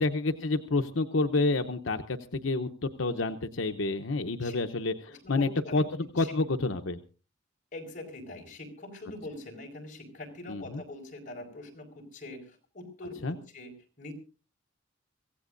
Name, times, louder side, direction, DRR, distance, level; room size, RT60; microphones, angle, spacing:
voice 1, 0.0-7.0 10.5-10.8 13.2-13.4, left 3 dB, 85° left, 7 dB, 0.8 m, -29 dB
voice 2, 5.1-5.8 6.2-6.3 7.7-14.1, left 2 dB, 40° left, 1 dB, 5.0 m, -43 dB
25.0 x 16.0 x 2.6 m, 0.35 s
head